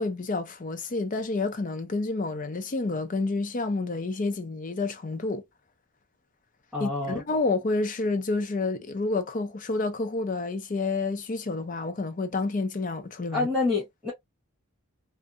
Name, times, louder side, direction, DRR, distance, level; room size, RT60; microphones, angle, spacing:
voice 1, 0.0-5.4 6.8-13.5, left 3 dB, 40° left, 0.5 m, -29 dB
voice 2, 6.7-7.2 13.3-14.1, left 3 dB, 5° right, 1.2 m, -27 dB
2.6 x 2.5 x 2.4 m
head